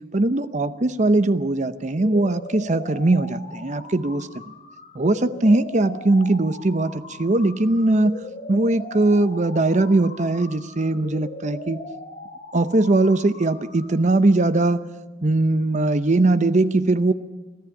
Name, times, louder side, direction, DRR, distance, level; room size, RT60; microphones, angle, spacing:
voice 1, 0.1-4.3 4.9-8.1 8.5-11.8 12.5-14.8 15.2-17.1, right 2 dB, 40° right, 13 dB, 0.8 m, -20 dB
sound 1, 2.0-14.0, left 2 dB, 40° left, 4.8 m, -39 dB
24.0 x 14.5 x 8.3 m, 1.2 s
head